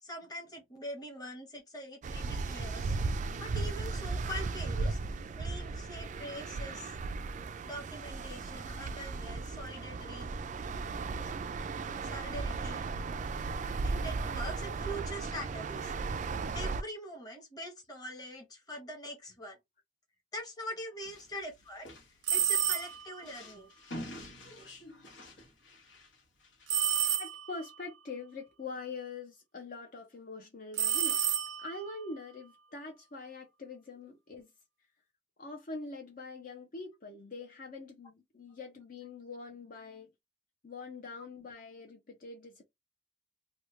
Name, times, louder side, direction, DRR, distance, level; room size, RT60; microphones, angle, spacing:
voice 1, 0.0-2.9 3.4-7.0 7.6-10.4 11.2-11.3 12.0-12.8 13.8-15.9 16.5-19.6 20.3-21.9 22.3-23.7, equal, 20° left, 1.0 m, -43 dB
sound 1, 2.0-16.8, right 3 dB, 40° right, 0.3 m, -36 dB
sound 2, 21.0-26.8, left 1 dB, 80° left, 1.1 m, -48 dB
sound 3, 22.2-23.2 26.7-27.7 30.7-31.9, right 10 dB, 80° right, 0.6 m, -30 dB
voice 2, 27.2-34.5 35.4-40.1 40.6-42.6, left 3 dB, 50° left, 0.6 m, -44 dB
3.0 x 2.2 x 3.1 m
head